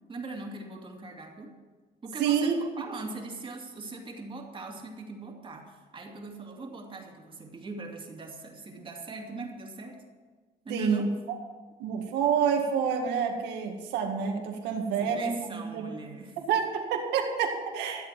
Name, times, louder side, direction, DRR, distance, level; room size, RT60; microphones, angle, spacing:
voice 1, 0.1-1.5 2.0-10.1 10.6-11.2 15.0-16.4, right 2 dB, 30° right, 1 dB, 2.5 m, -41 dB
voice 2, 2.2-2.5 10.7-11.4 11.8-15.9 16.4-18.1, right 7 dB, 90° right, 3 dB, 2.0 m, -28 dB
13.5 x 8.1 x 7.6 m, 1.4 s
cardioid pair, 110°, 17 cm